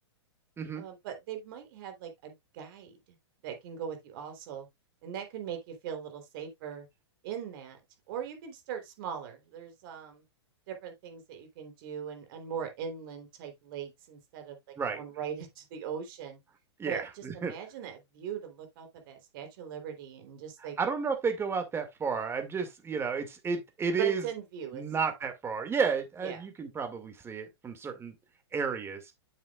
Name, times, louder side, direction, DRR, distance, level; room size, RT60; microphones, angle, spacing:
voice 1, 0.7-3.2 3.4-4.7 5.0-6.9 7.2-7.8 8.1-10.2 10.7-16.4 16.8-20.8 24.0-24.8 26.2-26.4, right 8 dB, 50° right, 3.4 m, -40 dB
voice 2, 16.8-17.5 20.8-24.2 24.7-28.1 28.5-29.0, right 5 dB, 15° right, 2.1 m, -32 dB
9.3 x 7.4 x 2.4 m
hypercardioid pair, 110°, 14 cm